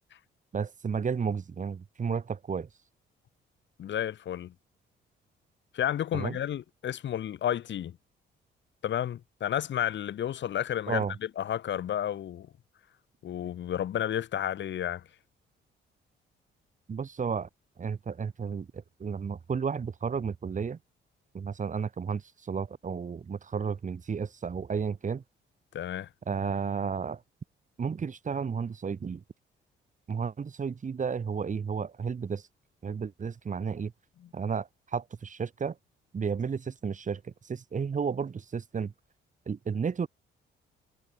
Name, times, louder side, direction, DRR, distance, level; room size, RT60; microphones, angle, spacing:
voice 1, 0.5-2.7 6.1-6.4 10.9-11.1 16.9-17.5 17.8-20.8 21.3-25.2 26.3-27.2 27.8-29.2 30.1-32.5 32.8-33.9 34.3-35.8 36.1-38.9 39.5-40.1, right 6 dB, 40° right, 2.3 m, -32 dB
voice 2, 3.8-4.5 5.7-8.0 8.8-12.5 13.2-15.1 25.7-26.1, left 10 dB, 65° left, 3.4 m, -31 dB
cardioid pair, 90°, 20 cm